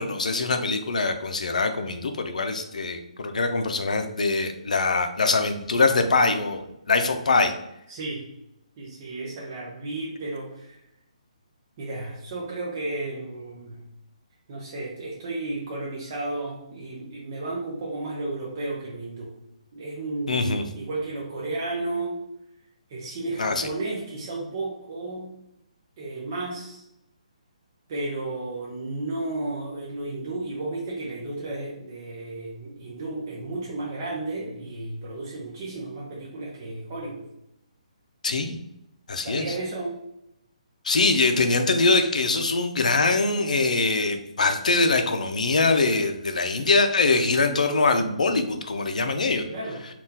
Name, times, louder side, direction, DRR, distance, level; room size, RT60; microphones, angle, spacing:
voice 1, 0.0-6.6 6.9-7.5 20.3-20.6 23.4-23.7 38.2-38.6 39.1-39.5 40.8-49.4, left 3 dB, 85° left, 7 dB, 0.5 m, -23 dB
voice 2, 7.9-8.3 8.8-10.8 11.8-13.8 14.5-19.3 19.7-22.2 22.9-25.3 26.0-26.9 27.9-37.2 39.1-39.9 49.5-49.9, right 2 dB, 20° right, -5 dB, 0.5 m, -33 dB
3.6 x 2.3 x 2.7 m, 0.84 s
hypercardioid pair, 175°, 4 cm